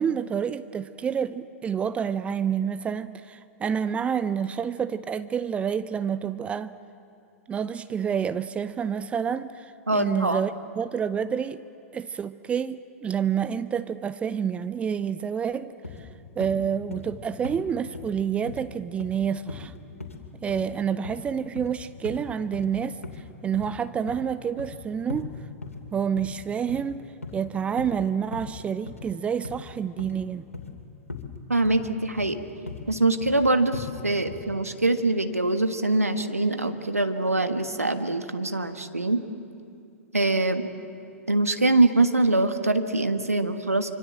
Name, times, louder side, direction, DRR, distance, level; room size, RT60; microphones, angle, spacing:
voice 1, 0.0-6.7 7.5-11.6 11.9-15.7 16.0-16.1 16.4-19.7 20.4-23.0 23.4-25.4 25.9-30.5, right 7 dB, 15° right, 0.5 m, -28 dB
voice 2, 9.9-10.4 31.5-32.4 32.9-39.2 40.1-40.7 41.3-43.9, right 2 dB, 85° right, 1.5 m, -23 dB
sound 1, 15.8-16.0 16.4-16.6 16.9-17.2 17.4-17.6 17.9-18.1 18.5-18.6 19.0-19.2 19.5-19.7 20.0-20.2 20.5-20.6 21.0-21.2 21.6-21.7 22.0-22.2 22.5-22.7 23.0-23.2 23.5-23.7 24.1-24.8 25.1-25.2 25.6-25.8 26.2-26.4 26.7-26.9 27.2-27.4 27.8-28.0 28.3-28.5 28.9-29.1 29.4-29.6 30.0-30.2 30.5-30.7 31.1-31.3 31.6-31.9 32.2-32.4 32.7-32.8 33.2-33.4 33.7-33.9 34.3-34.5, left 4 dB, 80° left, 2.8 m, -38 dB
25.5 x 25.0 x 7.8 m
figure-of-eight pair, 105°, 8 cm